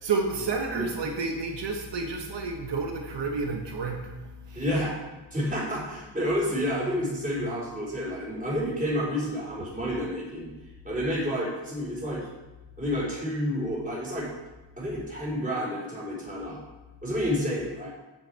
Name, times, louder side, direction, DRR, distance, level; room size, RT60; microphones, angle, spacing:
voice 1, 0.0-4.7, right 4 dB, 70° right, 3 dB, 1.3 m, -30 dB
voice 2, 4.6-4.9 5.3-10.5 10.8-12.3 12.8-14.3 14.8-16.6 17.0-17.9, equal, 20° right, -5 dB, 3.8 m, -29 dB
10.5 x 7.8 x 4.5 m, 1.1 s
wide cardioid pair, 125°, 44 cm